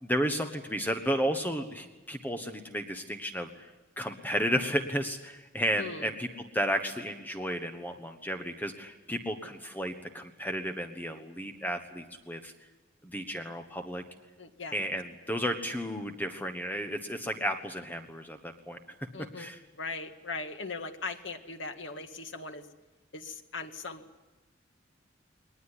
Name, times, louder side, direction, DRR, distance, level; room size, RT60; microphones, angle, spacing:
voice 1, 0.0-6.3 6.5-12.5 13.0-14.0 14.7-18.8 19.4-19.6, equal, 10° left, 6 dB, 1.3 m, -33 dB
voice 2, 5.8-6.1 14.4-14.8 19.1-22.7 23.1-24.0, left 3 dB, 80° left, 6 dB, 1.9 m, -39 dB
21.5 x 20.0 x 10.0 m, 1.2 s
head